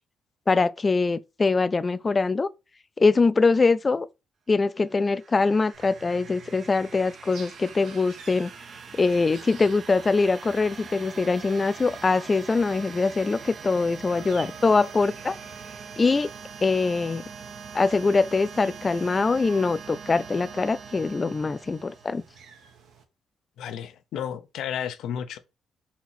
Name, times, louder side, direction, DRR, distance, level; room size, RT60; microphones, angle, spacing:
voice 1, 0.5-2.5 3.0-4.1 4.5-8.5 8.9-15.4 16.0-16.3 16.6-17.2 17.7-22.2, left 4 dB, 30° left, 0.4 m, -23 dB
sound 1, 4.8-22.4, right 6 dB, 50° right, 0.6 m, -43 dB
sound 2, 5.7-23.0, right 6 dB, 75° right, 1.1 m, -51 dB
voice 2, 23.6-25.4, left 9 dB, 80° left, 0.6 m, -32 dB
4.2 x 2.9 x 4.2 m
cardioid pair, 90°, 0 cm